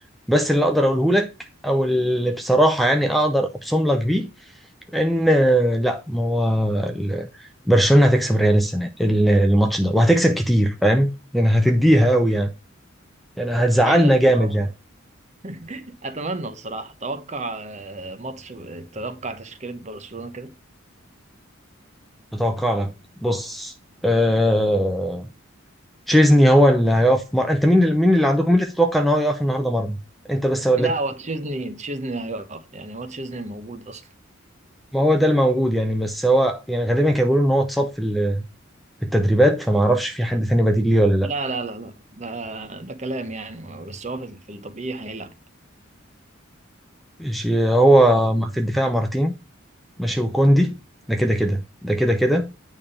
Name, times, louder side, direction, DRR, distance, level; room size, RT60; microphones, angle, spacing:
voice 1, 0.3-1.3 1.6-4.3 4.9-7.3 7.7-12.5 13.4-14.7 22.3-22.9 23.2-23.7 24.0-25.3 26.1-30.0 30.3-30.9 34.9-38.4 39.0-41.3 47.2-49.3 50.0-50.8 51.1-52.5, equal, ahead, 0.5 m, -19 dB
voice 2, 13.6-14.5 15.4-20.5 30.8-34.0 41.2-45.3, right 2 dB, 35° right, 0.9 m, -32 dB
8.9 x 3.5 x 5.3 m
head